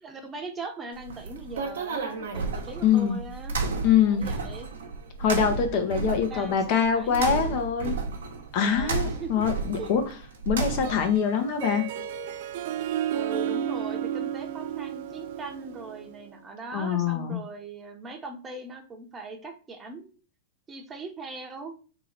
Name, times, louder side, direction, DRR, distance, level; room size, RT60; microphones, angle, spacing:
voice 1, 0.0-3.6 4.1-4.7 6.3-7.6 8.5-9.3 9.8-9.9 13.1-20.2 20.7-21.7, right 3 dB, 20° right, 4 dB, 0.8 m, -40 dB
sound 1, 1.0-11.2, right 4 dB, 80° right, 0.8 m, -32 dB
voice 2, 2.8-3.2 3.8-4.3 5.2-8.0 8.5-10.0 10.5-11.9 16.7-17.4, left 7 dB, 55° left, 6 dB, 0.8 m, -24 dB
Harp, 10.7-16.2, right 10 dB, 65° right, 0.4 m, -32 dB
3.0 x 2.9 x 4.0 m, 0.38 s
hypercardioid pair, 115°, 0 cm